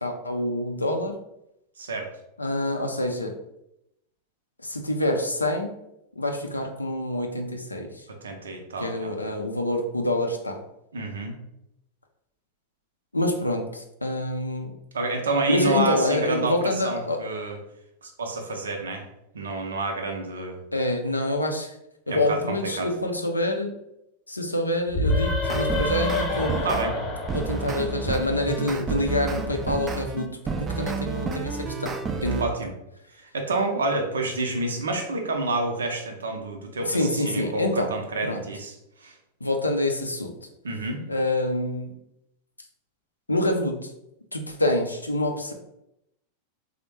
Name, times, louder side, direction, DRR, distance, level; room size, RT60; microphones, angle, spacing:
voice 1, 0.0-1.1 2.4-3.3 4.6-5.7 6.2-8.0 8.8-10.6 13.1-14.7 15.5-17.2 20.7-21.8 22.1-23.7 24.3-26.6 27.3-30.3 30.6-32.5 36.8-37.9 38.2-38.4 39.4-40.3 41.1-41.9 43.3-43.9 44.3-45.5, left 1 dB, 80° left, 3 dB, 0.4 m, -26 dB
voice 2, 8.2-9.1 10.9-11.4 14.9-17.6 18.0-19.0 19.3-20.6 22.1-22.9 26.6-26.9 32.4-32.7 33.2-38.7 39.0-39.1 40.6-41.0, right 2 dB, 70° right, 3 dB, 0.5 m, -29 dB
sound 1, 24.9-28.5, left 2 dB, 20° left, 0.8 m, -28 dB
sound 2, 25.4-26.9 27.3-32.4, right 4 dB, 20° right, 0.3 m, -30 dB
3.3 x 2.1 x 3.0 m, 0.83 s
figure-of-eight pair, 90°, 0 cm